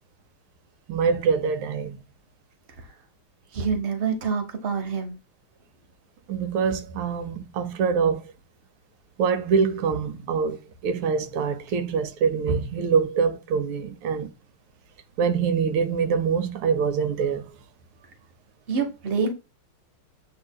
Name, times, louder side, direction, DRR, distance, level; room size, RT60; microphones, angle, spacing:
voice 1, 0.9-2.0 3.6-3.7 6.3-8.3 9.2-14.3 15.2-17.5, right 6 dB, 90° right, 1.6 m, -24 dB
voice 2, 3.5-5.2 18.7-19.3, right 5 dB, 40° right, 0.9 m, -26 dB
7.7 x 2.9 x 2.2 m
omnidirectional pair, 2.3 m